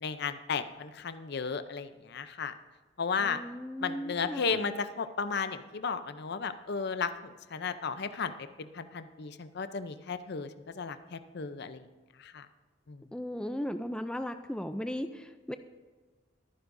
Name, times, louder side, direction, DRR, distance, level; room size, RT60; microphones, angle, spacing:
voice 1, 0.0-2.5 3.0-3.4 3.8-8.3 8.6-11.8 12.2-12.5 12.9-13.0, left 5 dB, 55° left, 11 dB, 0.6 m, -34 dB
voice 2, 3.2-4.7 13.1-15.6, equal, 5° left, 8 dB, 0.3 m, -36 dB
22.5 x 9.5 x 2.6 m, 1.3 s
head